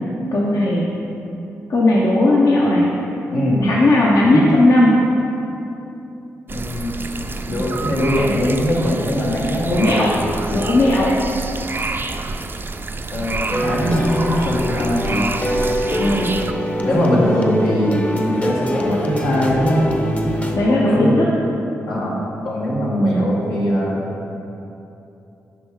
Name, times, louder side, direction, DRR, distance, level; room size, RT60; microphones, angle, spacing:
voice 1, 0.3-0.9 1.7-2.9 3.6-4.9 9.6-10.1 10.5-11.1 16.0-16.3 20.5-21.3 23.0-23.3, left 1 dB, 65° left, -5 dB, 0.8 m, -16 dB
voice 2, 3.3-3.7 4.3-4.4 6.5-6.9 7.5-10.2 13.1-15.2 16.8-19.8 20.7-21.1 21.9-24.0, equal, 85° left, -6 dB, 1.4 m, -21 dB
sound 1, 6.5-16.5, right 3 dB, 35° right, 0.4 m, -28 dB
sound 2, 13.5-20.6, equal, 25° left, 0.7 m, -24 dB
6.6 x 5.3 x 3.7 m, 2.9 s
supercardioid pair, 50°, 6 cm